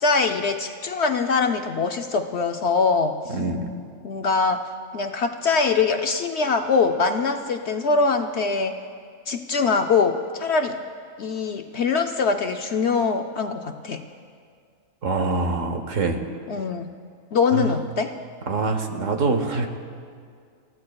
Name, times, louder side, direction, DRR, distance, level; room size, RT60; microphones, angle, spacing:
voice 1, 0.0-3.3 4.0-4.6 4.9-8.7 9.3-10.8 11.2-14.0 16.5-16.9 17.3-18.1, left 4 dB, 60° left, 5 dB, 0.8 m, -23 dB
voice 2, 3.3-3.6 15.0-16.2 17.5-17.8 18.5-19.7, right 3 dB, 65° right, 5 dB, 1.5 m, -24 dB
28.0 x 15.5 x 2.3 m, 2.2 s
omnidirectional pair, 1.5 m